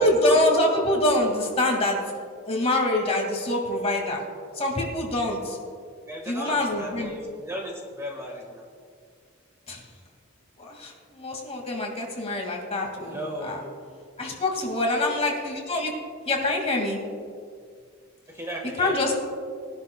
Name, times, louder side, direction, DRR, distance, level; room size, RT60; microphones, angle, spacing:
voice 1, 0.0-2.0 2.5-4.2 4.5-5.6 6.3-7.1 9.7-9.8 10.6-13.6 14.2-15.9 16.3-17.0 18.8-19.1, left 1 dB, 30° left, 0 dB, 2.0 m, -25 dB
voice 2, 6.1-8.6 13.0-13.7 18.3-19.2, equal, 15° right, 0 dB, 1.5 m, -35 dB
21.0 x 11.0 x 2.2 m, 2.2 s
head